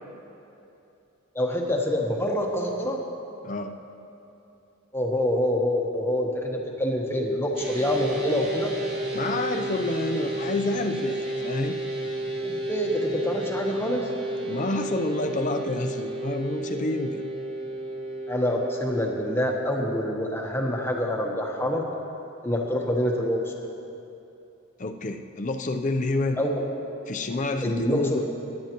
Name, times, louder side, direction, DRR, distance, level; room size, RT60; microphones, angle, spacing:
voice 1, 1.3-3.0 4.9-8.7 12.4-14.1 18.3-21.9 22.4-23.4 26.4-26.6 27.6-28.2, left 1 dB, 10° left, 0 dB, 1.0 m, -26 dB
sound 1, 7.5-19.7, right 2 dB, 35° right, 3.4 m, -32 dB
voice 2, 9.1-11.8 14.4-17.2 24.8-26.4 27.1-28.2, left 2 dB, 35° left, 6 dB, 0.6 m, -28 dB
21.5 x 10.5 x 3.0 m, 2.9 s
head